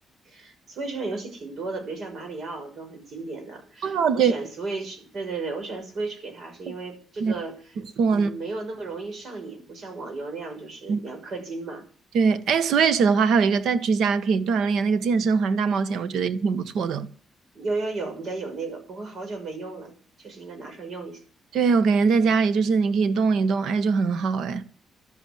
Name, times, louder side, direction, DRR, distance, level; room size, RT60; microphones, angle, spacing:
voice 1, 0.2-7.5 8.1-11.8 17.5-21.2, right 3 dB, 50° right, 6.4 m, -34 dB
voice 2, 3.8-4.3 6.7-6.8 7.2-7.3 8.0-8.3 10.9-11.0 12.1-17.1 21.5-24.6, right 5 dB, 75° right, 1.4 m, -22 dB
13.0 x 8.7 x 10.0 m
cardioid pair, 115°, 0 cm